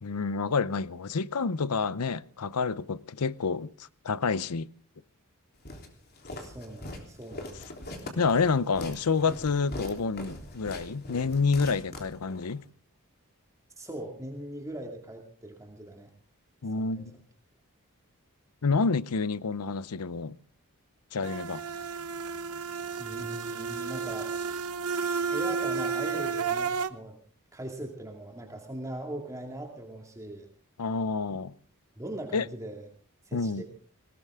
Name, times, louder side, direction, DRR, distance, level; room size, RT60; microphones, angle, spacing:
voice 1, 0.0-3.7 4.0-4.7 8.2-12.6 16.6-17.2 18.6-20.3 21.1-21.6 30.8-31.5 32.3-32.4 33.3-33.6, left 4 dB, 85° left, 0.7 m, -28 dB
Walk footsteps, 5.7-12.6, left 1 dB, 45° left, 3.4 m, -42 dB
voice 2, 6.4-7.8 13.8-16.1 16.8-17.1 23.0-24.3 25.3-27.2 27.5-30.5 32.0-32.9 33.2-33.6, right 1 dB, 15° right, 2.3 m, -40 dB
sound 1, 21.2-26.9, right 5 dB, 85° right, 0.9 m, -32 dB
19.5 x 18.5 x 3.7 m
head